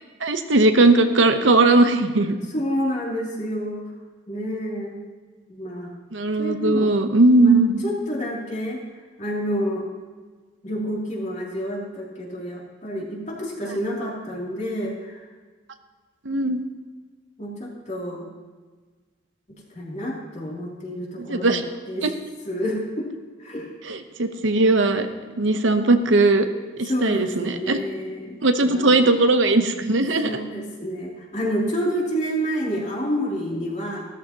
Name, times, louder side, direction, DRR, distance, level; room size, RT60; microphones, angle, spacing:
voice 1, 0.2-2.4 6.1-7.8 16.2-16.6 21.2-21.6 22.0-22.1 23.8-25.1 25.4-26.5 26.8-27.8 28.4-30.4, right 2 dB, 80° right, 8 dB, 0.9 m, -19 dB
voice 2, 2.5-3.8 4.3-5.0 5.5-6.0 6.4-6.9 7.4-7.6 7.8-8.8 9.2-9.8 10.6-15.2 17.4-18.3 19.7-21.6 21.9-22.0 22.5-23.1 23.4-23.7 26.8-28.4 28.6-29.1 30.2-34.0, equal, 40° left, -3 dB, 2.8 m, -28 dB
15.0 x 13.5 x 2.9 m, 1.4 s
head